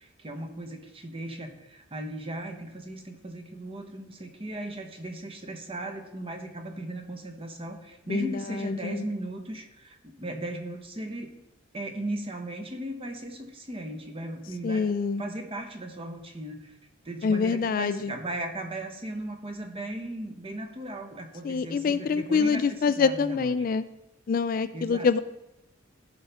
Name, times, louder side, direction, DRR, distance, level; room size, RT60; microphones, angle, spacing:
voice 1, 0.0-11.3 11.7-14.9 15.2-16.8 17.0-23.7 24.7-25.1, right 1 dB, 30° right, 4 dB, 1.0 m, -37 dB
voice 2, 8.1-9.1 14.6-15.2 17.2-18.1 21.4-23.8 24.3-25.2, left 5 dB, 45° left, 13 dB, 0.3 m, -26 dB
15.0 x 5.6 x 3.5 m, 0.93 s
head